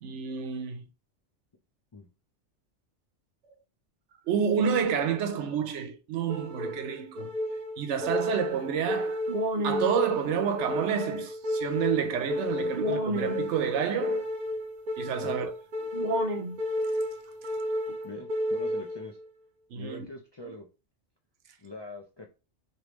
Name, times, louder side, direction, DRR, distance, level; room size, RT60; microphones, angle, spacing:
voice 1, 0.0-0.8 4.3-7.3 7.8-9.2 9.6-14.3 15.0-15.5 19.7-20.1, right 7 dB, 75° right, 1.0 m, -29 dB
sound 1, 6.3-19.3, equal, 55° right, 0.5 m, -31 dB
voice 2, 18.0-19.2 19.7-20.7 21.6-22.3, left 2 dB, 45° left, 0.3 m, -43 dB
3.4 x 2.6 x 3.0 m
omnidirectional pair, 1.2 m